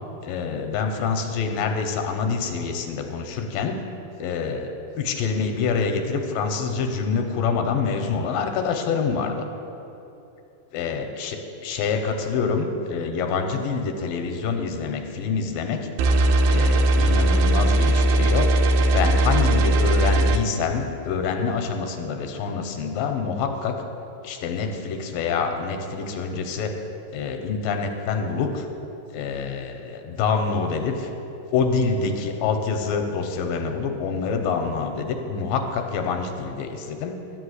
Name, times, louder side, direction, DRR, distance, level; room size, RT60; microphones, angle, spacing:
voice 1, 0.2-3.8 4.2-4.7 5.0-9.4 10.7-15.8 16.5-18.5 18.9-23.7 24.2-26.7 27.1-28.7 29.1-31.1 31.5-37.2, left 5 dB, 85° left, 5 dB, 2.5 m, -26 dB
sound 1, 16.0-20.4, right 1 dB, 85° right, 2.4 m, -19 dB
12.0 x 5.4 x 8.0 m, 2.9 s
omnidirectional pair, 4.1 m